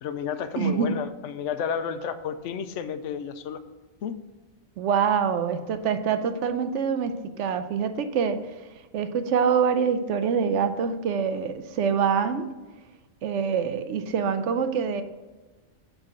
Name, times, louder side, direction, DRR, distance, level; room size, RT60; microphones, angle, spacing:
voice 1, 0.0-3.6 4.0-4.2, left 7 dB, 90° left, 10 dB, 0.9 m, -31 dB
voice 2, 0.6-1.0 4.8-8.4 8.9-12.5 13.2-15.0, right 6 dB, 80° right, 9 dB, 0.9 m, -25 dB
7.4 x 3.8 x 5.9 m, 1.2 s
omnidirectional pair, 1.2 m